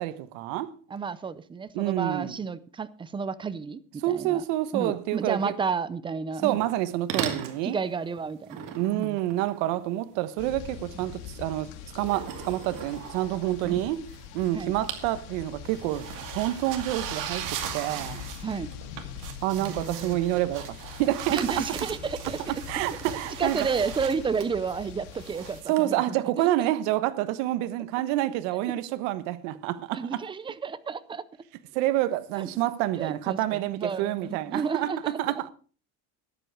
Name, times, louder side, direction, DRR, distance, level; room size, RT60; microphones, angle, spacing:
voice 1, 0.0-0.7 1.7-2.4 4.0-5.5 6.4-7.8 8.7-14.0 14.3-16.1 16.3-18.2 19.4-21.4 22.7-23.6 25.7-30.2 31.7-35.5, right 15 dB, 70° right, 1.3 m, -28 dB
voice 2, 0.9-4.4 4.7-6.6 7.6-9.2 13.6-13.9 14.5-14.7 18.4-18.7 19.6-20.2 21.3-22.4 23.4-26.2 28.7-28.8 29.9-31.3 32.3-32.5 32.9-35.1, right 5 dB, 15° right, 0.5 m, -31 dB
sound 1, 6.5-6.8 7.1-7.6 8.5-10.2 11.9-14.1 14.4-15.1 15.4-25.8, right 9 dB, 50° right, 2.4 m, -38 dB
sound 2, 10.4-25.6, left 9 dB, 70° left, 2.1 m, -43 dB
13.5 x 10.5 x 4.8 m
cardioid pair, 150°, 40 cm